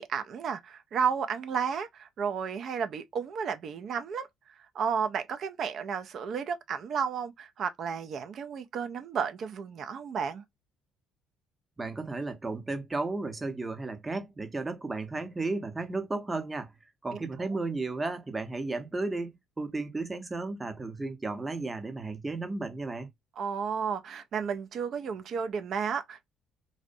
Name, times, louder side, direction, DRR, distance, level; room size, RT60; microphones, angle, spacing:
voice 1, 0.0-4.3 4.7-10.4 17.1-17.2 23.4-26.3, right 6 dB, 60° right, 0.4 m, -32 dB
voice 2, 11.8-16.7 17.0-23.1, right 3 dB, 20° right, 0.7 m, -34 dB
2.6 x 2.0 x 2.5 m
supercardioid pair, 70°, 0 cm